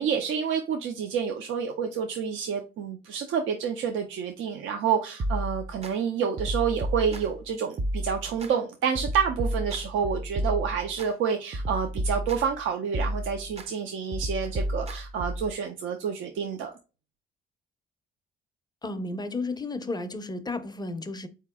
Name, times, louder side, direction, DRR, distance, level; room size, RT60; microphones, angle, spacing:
voice 1, 0.0-16.7, right 7 dB, 80° right, 0.5 m, -28 dB
sound 1, 5.2-5.9 6.4-7.4 7.8-8.5 8.9-11.1 11.5-12.6 12.9-13.7 14.1-15.5, right 1 dB, 30° right, 0.5 m, -31 dB
voice 2, 18.8-21.3, left 2 dB, 20° left, 0.5 m, -33 dB
4.0 x 2.9 x 3.4 m
cardioid pair, 90°, 20 cm